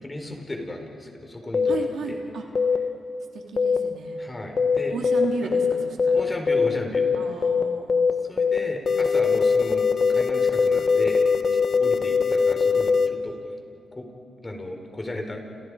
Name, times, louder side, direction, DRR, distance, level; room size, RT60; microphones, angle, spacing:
voice 1, 0.0-2.2 4.2-5.0 5.4-5.5 6.1-7.1 8.3-13.4 13.9-14.1 14.4-15.4, left 1 dB, 25° left, 3 dB, 4.7 m, -35 dB
sound 1, 1.5-1.7 2.6-2.8 3.6-3.8 4.6-4.8 5.0-5.2 5.5-5.7 6.0-6.2 6.5-6.7 6.9-7.2 7.4-7.6 7.9-8.1 8.4-8.6 8.9-13.1, left 5 dB, 45° left, 1.6 m, -21 dB
voice 2, 1.7-2.4 3.3-4.2 4.9-6.2 7.2-8.0, right 4 dB, 75° right, 1 dB, 3.4 m, -33 dB
30.0 x 29.0 x 5.1 m, 2.8 s
cardioid pair, 70°, 0 cm